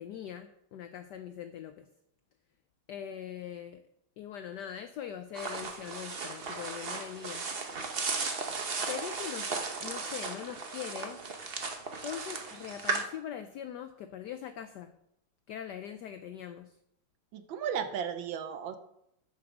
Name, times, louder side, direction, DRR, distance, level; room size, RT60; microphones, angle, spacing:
voice 1, 0.0-1.9 2.9-3.8 4.2-7.5 8.8-9.5 9.8-11.2 12.0-14.9 15.5-16.8, left 9 dB, 80° left, 9 dB, 0.9 m, -41 dB
sound 1, 5.3-13.0, right 4 dB, 55° right, 0.6 m, -36 dB
voice 2, 17.3-18.8, right 7 dB, 70° right, 9 dB, 1.4 m, -34 dB
8.6 x 6.1 x 5.9 m, 0.79 s
omnidirectional pair, 2.4 m